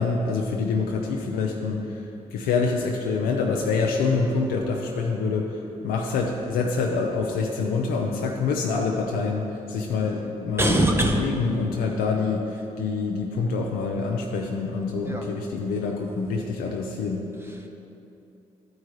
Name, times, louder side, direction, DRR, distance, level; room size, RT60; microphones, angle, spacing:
voice 1, 0.0-10.8 11.4-17.3, left 4 dB, 90° left, 0 dB, 0.6 m, -26 dB
voice 2, 10.6-11.3 15.0-15.3 17.3-17.7, right 1 dB, 15° right, 1 dB, 1.1 m, -23 dB
11.5 x 4.7 x 4.8 m, 2.8 s
supercardioid pair, 50°, 15 cm